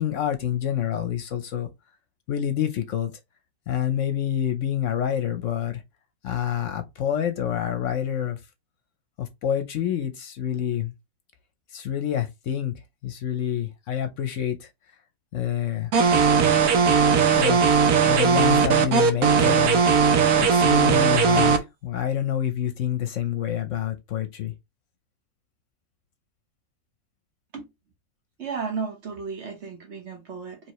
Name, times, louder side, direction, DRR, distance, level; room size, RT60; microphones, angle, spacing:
voice 1, 0.0-1.7 2.3-3.1 3.7-5.8 6.2-8.4 9.2-10.9 11.7-12.7 13.0-14.7 15.3-15.9 17.3-20.1 20.4-21.5 21.8-24.5, left 10 dB, 65° left, 0.9 m, -27 dB
sound 1, 15.9-21.6, right 6 dB, 80° right, 1.2 m, -18 dB
voice 2, 28.4-30.7, right 5 dB, 50° right, 1.2 m, -33 dB
4.6 x 3.0 x 3.0 m
omnidirectional pair, 1.6 m